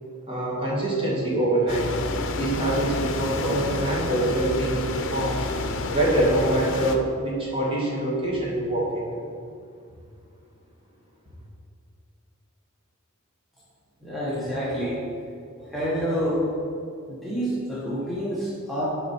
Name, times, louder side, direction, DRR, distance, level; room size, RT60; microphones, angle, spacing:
voice 1, 0.3-1.9 2.4-5.4 5.9-9.2, right 1 dB, 25° right, -5 dB, 2.0 m, -25 dB
sound 1, 1.7-7.0, left 3 dB, 65° left, 0.7 m, -29 dB
voice 2, 14.0-15.0 15.6-16.4 17.1-18.9, equal, ahead, -8 dB, 1.3 m, -28 dB
10.5 x 5.1 x 4.5 m, 2.3 s
head